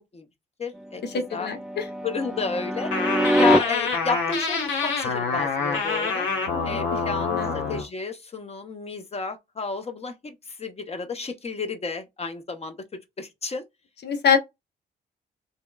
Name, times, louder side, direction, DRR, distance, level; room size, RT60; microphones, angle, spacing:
voice 1, 0.6-1.5 2.0-2.9 3.4-6.3 6.6-13.6, left 5 dB, 35° left, 0.8 m, -31 dB
sound 1, 0.8-3.6 6.5-7.8, right 1 dB, 5° right, 0.3 m, -26 dB
voice 2, 1.1-1.9 6.5-6.8 7.3-7.5 14.0-14.4, left 7 dB, 60° left, 0.9 m, -25 dB
sound 2, 2.9-7.8, left 4 dB, 85° left, 0.9 m, -26 dB
2.9 x 2.0 x 2.3 m
supercardioid pair, 60°, 19 cm